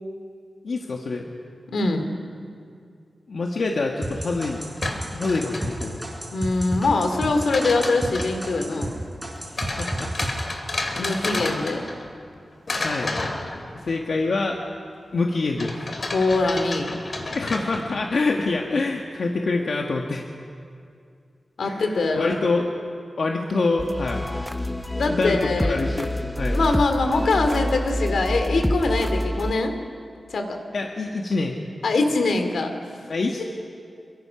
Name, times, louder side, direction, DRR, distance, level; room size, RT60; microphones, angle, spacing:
voice 1, 0.6-1.3 3.3-4.6 5.1-6.0 9.5-10.3 10.9-11.3 12.8-13.1 13.9-14.6 15.1-15.8 17.3-20.2 21.6-22.7 23.2-24.3 25.1-26.6 30.7-31.6 33.1-33.4, left 3 dB, 60° left, 1 dB, 1.5 m, -26 dB
voice 2, 1.7-2.1 6.3-8.9 11.0-11.8 16.1-16.9 21.6-22.4 24.9-25.8 26.5-29.7 30.3-30.6 31.8-32.7, left 3 dB, 80° left, 6 dB, 2.5 m, -23 dB
sound 1, 4.0-8.9 9.2-10.3, right 1 dB, 10° right, 5.1 m, -31 dB
sound 2, 4.6-6.1 7.1-8.4 9.6-12.3 12.7-14.0 15.6-18.1, left 2 dB, 40° left, 2.6 m, -31 dB
sound 3, 23.8-29.5, equal, 5° left, 0.7 m, -27 dB
26.5 x 23.0 x 5.8 m, 2.4 s
wide cardioid pair, 165°, 0 cm